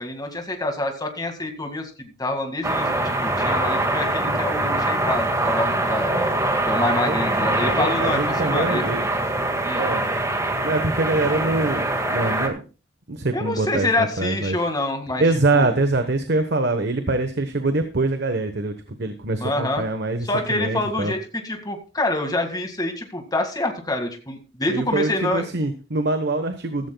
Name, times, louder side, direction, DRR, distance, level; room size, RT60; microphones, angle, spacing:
voice 1, 0.0-2.9 3.2-6.2 6.6-8.8 9.6-9.9 13.3-15.8 19.4-19.9 20.2-25.5, left 2 dB, 20° left, 4 dB, 2.0 m, -26 dB
sound 1, 2.6-12.5, right 1 dB, 15° right, 1.8 m, -23 dB
voice 2, 6.8-7.2 7.5-9.0 9.7-10.0 10.6-11.8 12.1-12.6 13.1-14.6 15.2-18.7 19.0-21.1 24.7-26.9, right 2 dB, 60° right, 8 dB, 1.1 m, -24 dB
15.0 x 14.5 x 2.3 m, 0.34 s
head